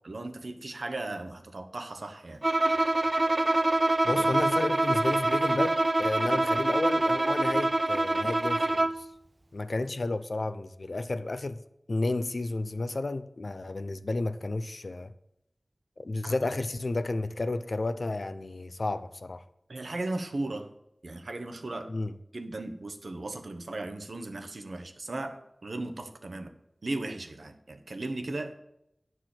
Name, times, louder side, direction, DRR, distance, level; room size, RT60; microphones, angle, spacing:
voice 1, 0.0-2.4 4.1-4.2 6.3-6.5 16.2-16.3 19.7-20.7 21.0-21.9 22.3-26.5 26.8-28.6, right 2 dB, 80° right, 1.0 m, -36 dB
Bowed string instrument, 2.4-9.1, right 2 dB, 40° right, 0.3 m, -25 dB
voice 2, 4.0-9.1 9.5-11.6 11.9-15.1 16.0-19.4 21.9-22.2, left 2 dB, 70° left, 0.6 m, -32 dB
9.9 x 4.6 x 7.7 m
wide cardioid pair, 60°, 0 cm